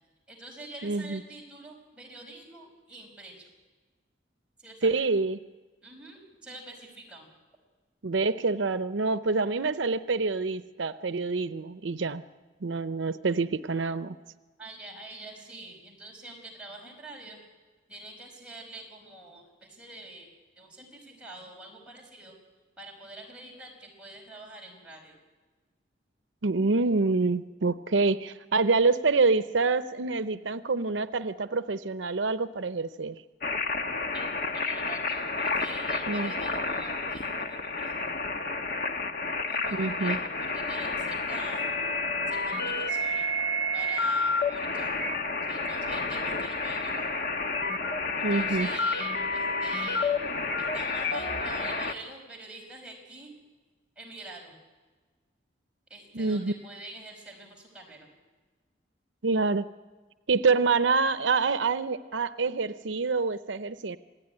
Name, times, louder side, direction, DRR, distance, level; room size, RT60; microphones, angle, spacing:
voice 1, 0.3-3.4 4.6-4.9 5.8-7.3 14.6-17.4 17.9-20.3 20.6-22.3 22.8-25.1 34.1-38.0 39.5-41.7 42.3-43.3 43.7-44.9 45.5-47.1 48.3-50.2 50.6-53.3 54.0-54.6 55.9-58.0, right 2 dB, 5° right, -2 dB, 5.3 m, -46 dB
voice 2, 0.8-1.2 4.8-5.4 8.0-12.2 12.6-14.2 26.4-33.2 36.1-36.3 39.7-40.2 48.2-48.7 56.1-56.5 59.2-59.6 60.3-64.0, right 4 dB, 85° right, 12 dB, 0.7 m, -26 dB
sound 1, 33.4-51.9, left 3 dB, 50° left, 1.3 m, -30 dB
27.0 x 17.0 x 9.9 m, 1.3 s
head